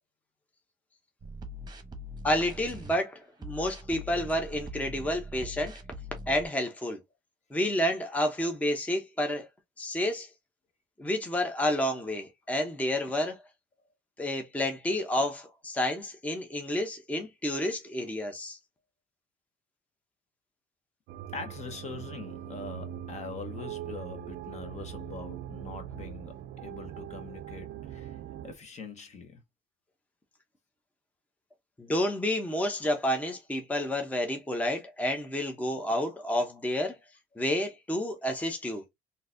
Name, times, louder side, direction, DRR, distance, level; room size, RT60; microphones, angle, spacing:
sound 1, 1.2-3.0 3.4-6.5, left 1 dB, 25° right, 1.0 m, -42 dB
voice 1, 2.2-5.8 6.3-7.0 7.5-9.5 9.8-10.3 11.0-13.4 14.2-18.6 31.8-37.0 37.4-38.8, left 1 dB, 10° left, 0.7 m, -30 dB
sound 2, 21.1-28.6, right 10 dB, 75° right, 0.4 m, -41 dB
voice 2, 21.3-26.3 26.6-28.1 28.4-29.4, left 4 dB, 40° left, 1.1 m, -42 dB
3.8 x 2.7 x 2.6 m
cardioid pair, 110°, 17 cm